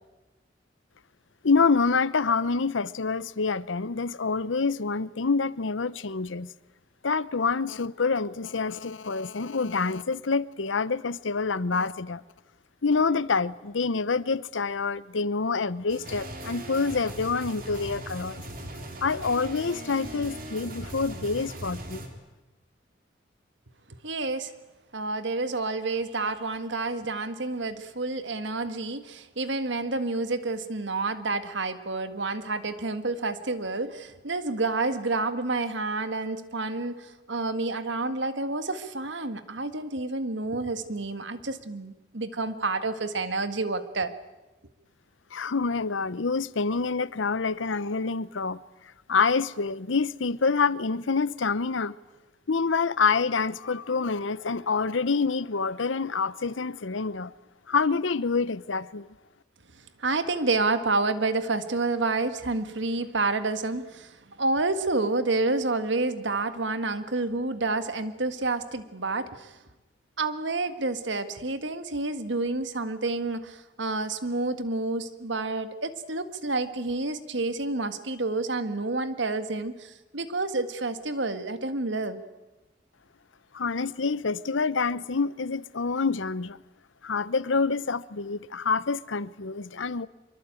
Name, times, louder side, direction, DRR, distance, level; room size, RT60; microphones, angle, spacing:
voice 1, 1.4-6.5 7.0-12.2 12.8-18.4 19.0-22.1 45.3-48.6 49.1-51.9 52.5-57.3 57.7-59.1 83.5-86.6 87.0-90.1, left 4 dB, 85° left, 0.8 m, -27 dB
sound 1, 15.9-22.1, right 1 dB, 50° right, 3.6 m, -39 dB
voice 2, 24.0-24.5 24.9-44.1 59.7-69.6 70.2-82.2, right 3 dB, 75° right, 1.7 m, -29 dB
24.5 x 23.5 x 9.0 m
head